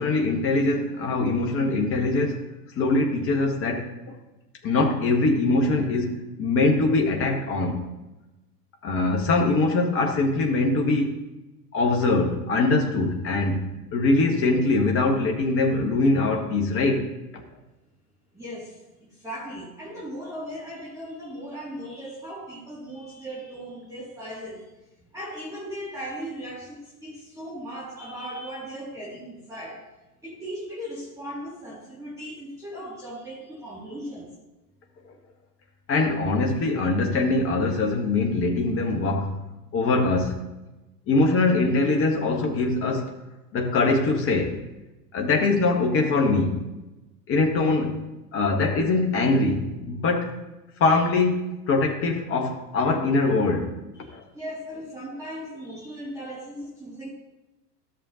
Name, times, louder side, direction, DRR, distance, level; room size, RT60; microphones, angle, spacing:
voice 1, 0.0-2.4 2.8-3.9 4.6-7.8 8.8-11.2 11.7-17.4 35.9-39.4 39.7-40.4 41.1-43.1 43.5-44.6 45.1-46.6 47.3-48.0 48.3-50.3 50.8-53.7 54.1-54.2, left 3 dB, 25° left, 2 dB, 1.4 m, -23 dB
voice 2, 18.3-24.7 25.0-29.8 30.2-34.3 54.0-57.1, equal, 5° right, -7 dB, 2.4 m, -37 dB
14.0 x 7.0 x 2.9 m, 1.0 s
figure-of-eight pair, 95°, 49 cm